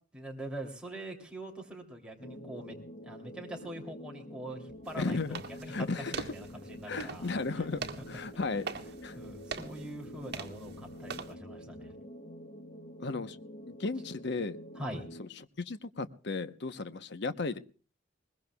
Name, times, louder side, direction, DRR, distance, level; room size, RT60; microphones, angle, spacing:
voice 1, 0.1-2.8 3.0-7.9 9.1-11.9 14.7-15.1, right 1 dB, 5° right, 0 dB, 2.9 m, -43 dB
sound 1, 2.2-15.3, equal, 40° left, 1.1 m, -47 dB
sound 2, 4.8-11.3, right 5 dB, 60° right, 1.7 m, -44 dB
voice 2, 5.0-5.4 5.7-6.2 6.9-7.8 8.1-8.6 9.0-9.2 13.0-13.4 13.7-14.6 15.2-15.3 15.6-17.6, left 3 dB, 65° left, 11 dB, 0.9 m, -34 dB
21.5 x 21.0 x 2.3 m, 0.36 s
head